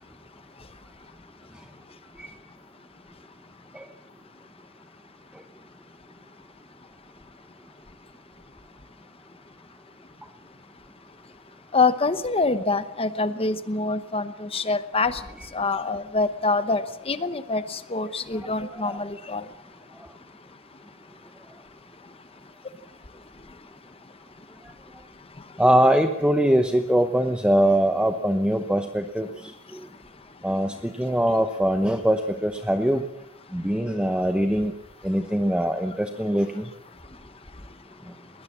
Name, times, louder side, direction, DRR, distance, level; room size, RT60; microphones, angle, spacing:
voice 1, 11.7-15.2 15.5-19.4, left 3 dB, 25° left, 0.9 m, -25 dB
voice 2, 25.6-29.5 30.4-33.0 33.5-34.7 35.0-36.6, right 1 dB, 5° right, 0.9 m, -22 dB
21.5 x 19.5 x 7.3 m
head